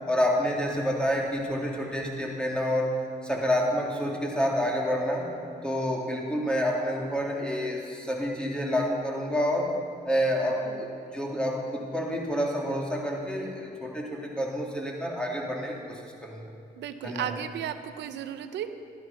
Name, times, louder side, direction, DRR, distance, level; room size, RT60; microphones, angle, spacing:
voice 1, 0.1-2.9 3.2-5.3 5.6-9.7 10.0-10.9 11.1-16.4 17.0-17.3, equal, 5° left, -2 dB, 3.2 m, -28 dB
voice 2, 10.4-10.8 16.8-18.7, right 10 dB, 85° right, 10 dB, 0.7 m, -35 dB
13.0 x 12.0 x 5.7 m, 2.4 s
cardioid pair, 60°, 18 cm